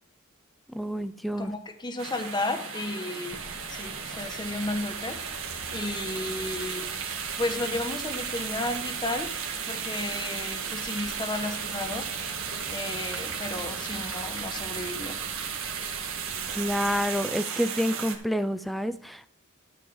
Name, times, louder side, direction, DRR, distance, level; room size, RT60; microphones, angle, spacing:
voice 1, 0.7-1.5 16.5-19.3, equal, ahead, 13 dB, 0.4 m, -28 dB
voice 2, 1.4-3.4 3.7-5.2 5.7-6.9 7.4-9.4 9.6-12.1 12.7-15.2, left 2 dB, 20° left, 6 dB, 1.1 m, -33 dB
sound 1, 2.0-18.2, right 6 dB, 65° right, 1.9 m, -34 dB
sound 2, 3.3-17.1, right 1 dB, 30° right, 1.4 m, -48 dB
12.0 x 4.7 x 7.1 m, 0.63 s
head